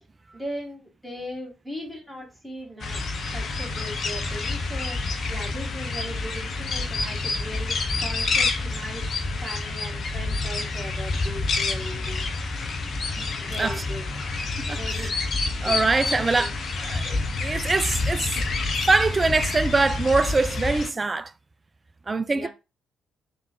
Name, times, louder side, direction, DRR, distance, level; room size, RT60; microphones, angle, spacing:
voice 1, 0.3-5.0 5.3-9.0 9.4-12.2 13.4-14.1 14.6-15.2 15.6-16.5 22.3-22.5, equal, 5° left, 2.2 m, -38 dB
sound 1, 2.8-20.9, left 3 dB, 45° left, 0.8 m, -28 dB
voice 2, 14.6-15.1 15.6-16.5 16.8-18.4 18.8-21.3 22.1-22.5, right 3 dB, 25° right, 0.4 m, -24 dB
3.6 x 3.1 x 4.6 m
figure-of-eight pair, 45°, 0 cm